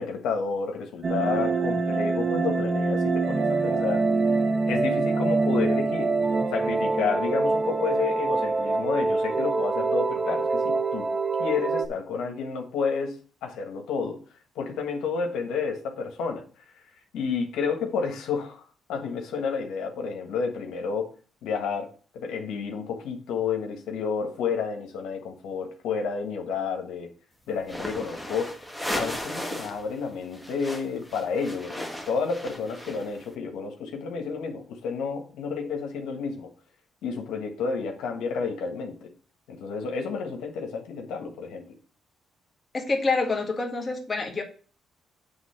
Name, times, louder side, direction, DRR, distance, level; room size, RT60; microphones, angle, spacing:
voice 1, 0.0-4.0 4.7-6.1 6.5-11.1 11.4-14.2 14.5-16.4 17.1-18.6 18.9-21.1 21.4-21.9 22.1-27.1 27.5-28.6 28.9-36.5 37.0-39.1 39.5-41.6, left 5 dB, 85° left, 2 dB, 1.5 m, -30 dB
sound 1, 1.0-11.9, right 3 dB, 40° right, 1.0 m, -25 dB
sound 2, 27.6-29.8 30.1-33.2, equal, ahead, 1.5 m, -35 dB
voice 2, 42.7-44.4, left 3 dB, 30° left, 1 dB, 1.8 m, -27 dB
8.1 x 3.6 x 5.6 m, 0.39 s
cardioid pair, 90°, 0 cm